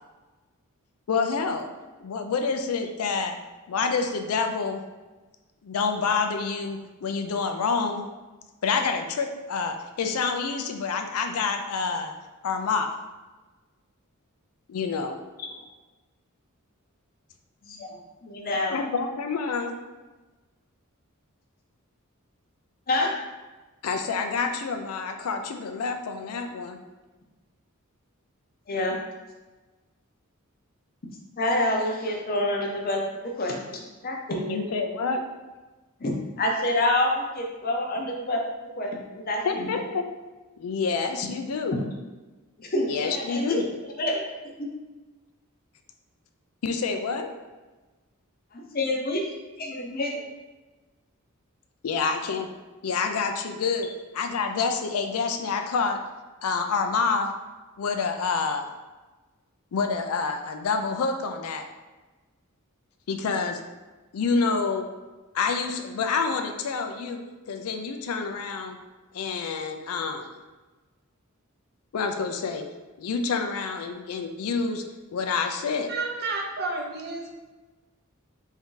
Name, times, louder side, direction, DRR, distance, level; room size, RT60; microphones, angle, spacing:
voice 1, 1.1-1.7 2.0-3.4 3.7-4.8 5.6-8.0 8.6-12.1 12.4-12.9 14.7-15.2 18.7-19.7 23.8-26.8 34.5-35.3 39.4-40.1 40.6-41.8 42.9-43.7 46.6-47.3 51.8-52.5 52.8-56.0 56.4-57.3 57.8-58.7 59.7-61.6 63.1-63.6 64.1-64.9 65.3-67.2 67.5-68.8 69.1-70.3 71.9-72.7 73.0-74.8 75.1-75.9, left 5 dB, 85° left, 5 dB, 0.4 m, -27 dB
voice 2, 17.6-18.8 22.9-23.1 28.7-29.0 31.4-33.0 33.4-34.6 36.0-38.4 38.8-39.7 41.7-41.8 42.6-43.6 44.0-44.2 44.6-44.7 48.5-49.2 49.6-50.2, left 1 dB, 45° left, 1 dB, 0.6 m, -27 dB
voice 3, 75.9-77.3, right 3 dB, 45° right, 1 dB, 0.6 m, -31 dB
3.5 x 2.7 x 3.7 m, 1.2 s
head